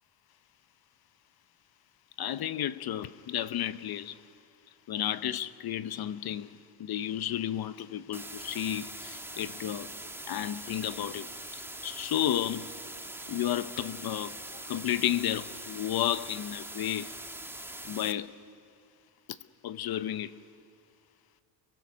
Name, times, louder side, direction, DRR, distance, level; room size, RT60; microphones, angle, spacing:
voice 1, 2.2-4.2 4.9-9.9 10.3-12.7 13.3-14.4 14.7-17.1 17.8-18.3 19.3-19.4 19.6-20.4, left 11 dB, 50° left, 0.8 m, -32 dB
sound 1, 8.1-18.1, right 1 dB, 5° right, 1.3 m, -42 dB
28.5 x 22.5 x 6.3 m
cardioid pair, 100°, 49 cm